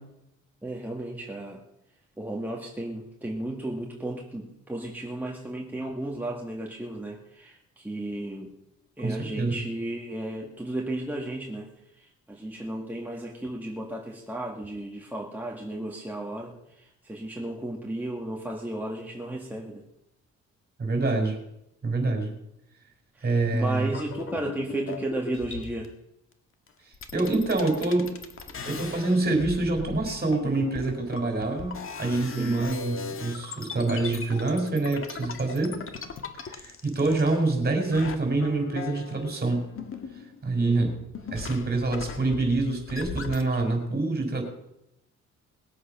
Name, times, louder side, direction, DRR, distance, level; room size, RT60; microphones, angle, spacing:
voice 1, 0.6-1.6 2.2-8.5 9.0-11.7 12.0-19.8 23.1-25.9 32.4-32.7 40.6-41.0, right 1 dB, 5° right, -1 dB, 1.9 m, -34 dB
voice 2, 9.0-9.5 20.8-21.4 21.8-22.3 23.2-23.9 27.1-28.1 28.6-35.8 36.4-39.7 40.4-41.0 41.3-44.4, right 2 dB, 35° right, 4 dB, 5.2 m, -26 dB
sound 1, 23.8-25.9 26.7-26.8 26.9-37.6 37.9-40.5 40.8-43.6, left 5 dB, 45° left, 1.8 m, -39 dB
20.5 x 8.0 x 5.9 m, 0.85 s
cardioid pair, 90°, 30 cm